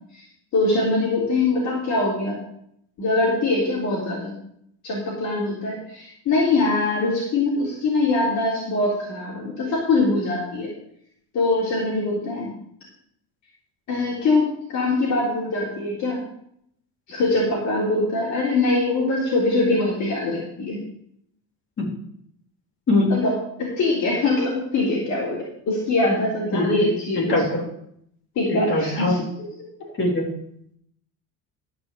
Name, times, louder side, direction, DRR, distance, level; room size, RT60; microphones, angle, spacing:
voice 1, 0.5-2.4 3.0-4.3 4.8-10.7 11.3-12.5 13.9-16.2 17.1-20.8 23.1-23.3 23.6-27.3 28.4-29.2 29.6-29.7, left 2 dB, 50° left, -5 dB, 3.8 m, -23 dB
voice 2, 27.2-27.6 28.5-29.2 30.0-30.3, left 2 dB, 30° left, 0 dB, 3.6 m, -21 dB
13.5 x 5.7 x 7.4 m, 0.71 s
cardioid pair, 145°, 37 cm